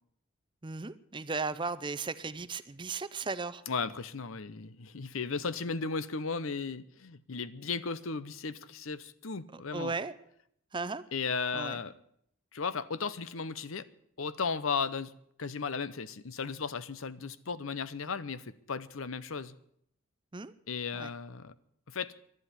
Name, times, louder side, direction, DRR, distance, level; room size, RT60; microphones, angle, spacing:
voice 1, 0.6-3.6 9.5-10.1 10.7-11.0 11.5-11.8 20.3-20.5 20.9-21.1, right 4 dB, 20° right, 0.5 m, -36 dB
voice 2, 3.7-10.0 11.1-11.9 12.5-13.9 14.2-15.1 15.4-19.5 20.7-21.5 21.9-22.1, left 5 dB, 70° left, 0.8 m, -35 dB
12.0 x 11.0 x 10.0 m
head